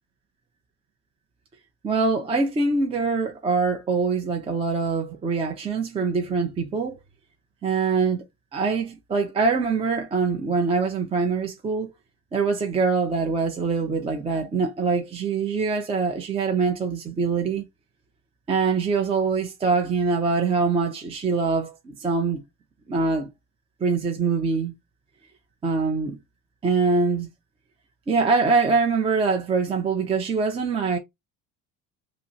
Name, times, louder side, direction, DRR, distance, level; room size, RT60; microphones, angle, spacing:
voice 1, 1.8-7.0 7.6-8.2 8.5-11.9 12.3-17.7 18.5-22.4 22.9-23.3 23.8-24.7 25.6-26.2 26.6-27.3 28.1-31.0, right 4 dB, 15° right, 0.5 m, -24 dB
5.3 x 2.0 x 2.7 m
cardioid pair, 165°, 36 cm